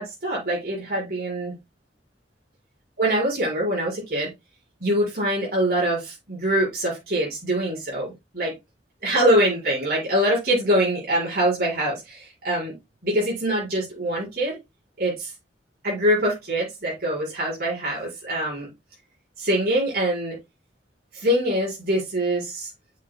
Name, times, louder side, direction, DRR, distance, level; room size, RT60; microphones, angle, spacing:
voice 1, 0.0-1.5 3.0-4.3 4.8-8.1 8.3-8.5 9.0-12.7 13.0-14.6 15.0-15.3 15.8-18.7 19.4-20.4 21.1-22.7, right 1 dB, 55° right, -6 dB, 5.3 m, -24 dB
7.9 x 7.8 x 2.3 m, 0.21 s
head